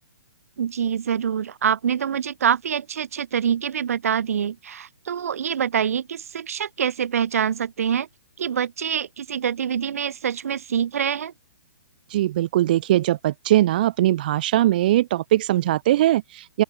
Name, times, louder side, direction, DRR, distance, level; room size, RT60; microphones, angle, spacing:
voice 1, 0.6-8.1 8.4-11.3, right 8 dB, 55° right, 2.5 m, -25 dB
voice 2, 12.1-16.6, right 14 dB, 30° right, 1.2 m, -20 dB
open air
hypercardioid pair, 175°, 10 cm